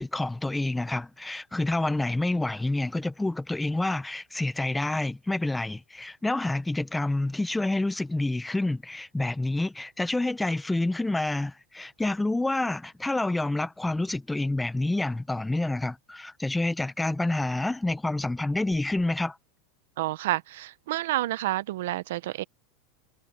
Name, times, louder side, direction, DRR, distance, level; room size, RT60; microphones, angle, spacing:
voice 1, 0.0-19.4, left 2 dB, 5° left, 1.0 m, -28 dB
voice 2, 20.0-22.4, right 16 dB, 75° right, 0.8 m, -29 dB
supercardioid pair, 125°, 0 cm